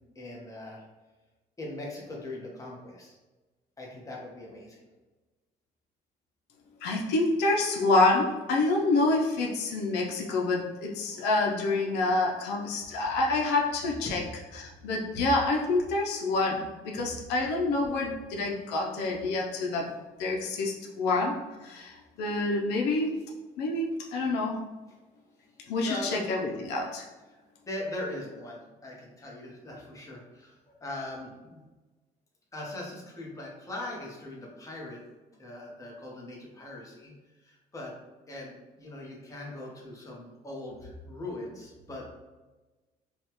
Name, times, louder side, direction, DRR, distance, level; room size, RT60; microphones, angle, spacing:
voice 1, 0.1-0.8 1.6-3.1 3.8-4.8 11.1-11.2 18.2-18.6 25.8-26.2 27.7-31.6 32.5-35.0 35.4-37.1 37.4-37.9 38.3-42.1, left 1 dB, 20° left, -3 dB, 1.1 m, -40 dB
voice 2, 6.8-14.2 14.5-19.9 20.2-21.4 21.6-23.2 23.6-24.6 25.7-27.1, left 2 dB, 85° left, -1 dB, 0.7 m, -27 dB
5.2 x 2.4 x 3.0 m, 1.2 s
cardioid pair, 110°, 17 cm